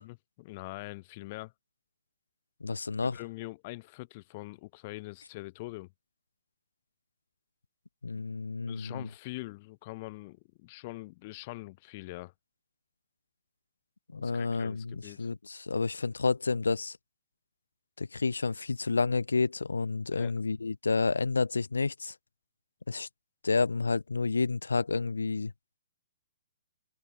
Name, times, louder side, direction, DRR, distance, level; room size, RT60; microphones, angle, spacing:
voice 1, 0.0-1.5 3.1-5.9 8.7-12.3 14.2-15.3 20.1-20.3, left 21 dB, 40° left, 1.9 m, -43 dB
voice 2, 2.6-3.2 8.0-9.1 14.1-17.0 18.0-22.1 22.9-23.1 23.4-25.5, left 4 dB, 85° left, 0.4 m, -30 dB
hypercardioid pair, 130°, 0 cm